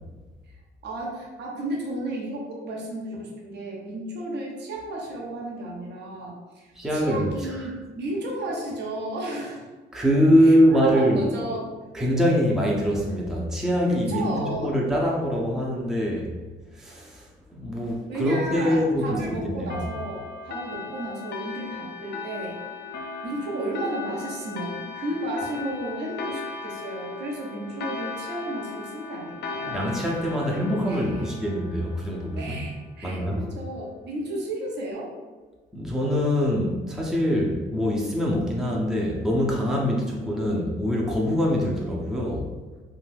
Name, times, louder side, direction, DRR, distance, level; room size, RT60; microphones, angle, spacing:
voice 1, 0.8-9.6 10.5-11.7 13.9-14.7 18.1-22.6 23.2-29.8 30.2-31.3 32.4-35.1 40.0-40.3, right 1 dB, 60° right, -2 dB, 0.7 m, -33 dB
voice 2, 6.8-7.7 9.9-11.3 11.9-16.3 16.7-19.7 29.6-32.6 33.0-33.4 35.7-42.5, equal, 5° right, -3 dB, 0.5 m, -24 dB
sound 1, 19.7-32.8, left 4 dB, 60° left, 0.4 m, -37 dB
2.5 x 2.3 x 3.3 m, 1.3 s
cardioid pair, 90°, 20 cm